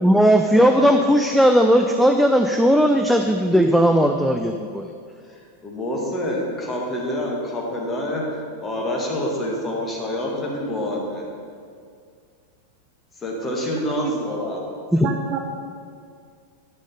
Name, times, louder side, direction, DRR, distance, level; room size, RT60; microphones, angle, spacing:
voice 1, 0.0-4.9 14.9-15.1, equal, ahead, 4 dB, 0.4 m, -17 dB
voice 2, 5.3-8.2 8.6-11.3 13.2-14.6, left 1 dB, 20° left, -2 dB, 1.9 m, -27 dB
voice 3, 15.0-15.4, right 9 dB, 35° right, 4 dB, 0.8 m, -28 dB
10.0 x 6.2 x 5.4 m, 2.2 s
figure-of-eight pair, 90°, 0 cm